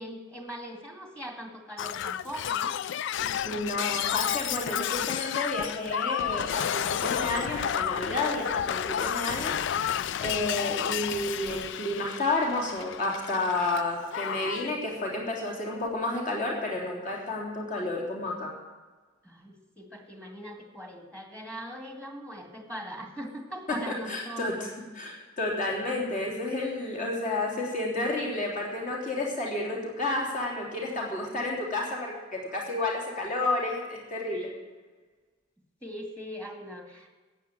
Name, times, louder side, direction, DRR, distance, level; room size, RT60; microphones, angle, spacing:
voice 1, 0.0-2.8 19.2-24.7 35.8-37.1, equal, 5° left, 3 dB, 2.1 m, -41 dB
Shatter, 1.8-13.8 14.1-14.7 15.7-15.9, left 9 dB, 60° left, 0.4 m, -31 dB
voice 2, 3.4-9.5 10.2-18.5 23.7-24.7 24.9-34.5, left 2 dB, 40° left, -2 dB, 3.4 m, -31 dB
15.0 x 8.6 x 9.0 m, 1.3 s
head